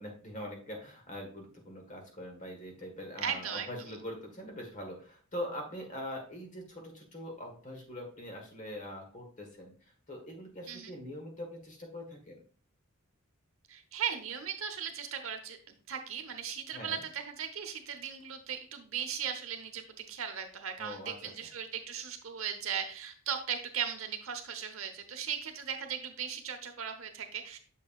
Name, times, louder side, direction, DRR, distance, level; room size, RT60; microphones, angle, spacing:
voice 1, 0.0-12.4 16.7-17.0 20.8-21.3, left 1 dB, 40° left, 2 dB, 1.5 m, -43 dB
voice 2, 3.2-3.7 10.7-10.9 13.7-15.6 15.9-27.6, right 8 dB, 70° right, 6 dB, 1.0 m, -37 dB
6.8 x 6.3 x 2.4 m, 0.43 s
head